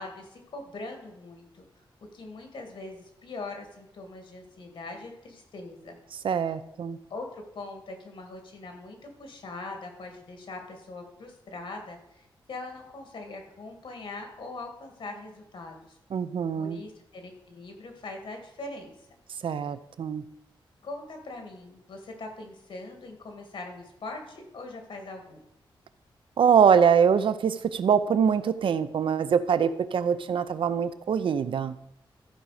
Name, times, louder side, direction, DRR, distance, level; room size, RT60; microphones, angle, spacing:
voice 1, 0.0-1.6 2.1-6.0 7.1-7.3 7.5-16.0 16.6-18.9 20.8-25.4, left 2 dB, 70° left, 4 dB, 2.0 m, -41 dB
voice 2, 6.2-7.0 16.1-16.8 19.4-20.2 26.4-31.8, right 7 dB, 70° right, 13 dB, 0.6 m, -23 dB
14.0 x 5.1 x 4.9 m, 0.85 s
wide cardioid pair, 160°, 9 cm